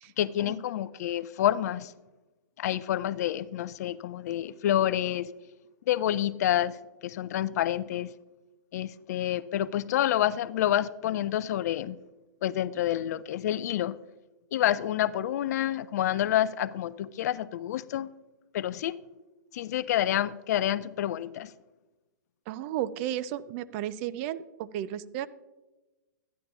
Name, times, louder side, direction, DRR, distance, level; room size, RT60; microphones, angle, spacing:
voice 1, 0.2-1.9 2.6-5.3 5.9-8.1 8.7-12.0 12.4-14.0 14.5-18.1 18.5-18.9 19.5-21.5, left 12 dB, 55° left, 18 dB, 0.4 m, -28 dB
voice 2, 22.5-25.3, right 11 dB, 40° right, 16 dB, 0.4 m, -33 dB
13.5 x 10.0 x 2.4 m, 1.1 s
hypercardioid pair, 120°, 11 cm